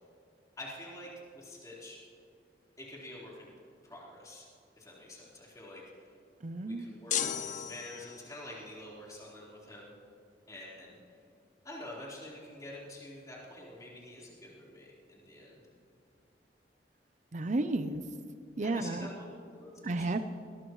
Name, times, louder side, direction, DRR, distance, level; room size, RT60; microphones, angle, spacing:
voice 1, 0.6-2.0 2.8-3.5 3.8-4.4 4.8-6.1 6.6-9.9 10.5-11.0 11.6-15.6 18.6-20.1, left 1 dB, 20° left, -6 dB, 4.2 m, -47 dB
voice 2, 6.4-6.9 17.3-18.0 18.6-19.1 19.8-20.2, right 2 dB, 45° right, 9 dB, 0.6 m, -32 dB
sound 1, 7.1-8.4, left 9 dB, 45° left, 0.7 m, -35 dB
21.5 x 19.5 x 3.2 m, 2.4 s
head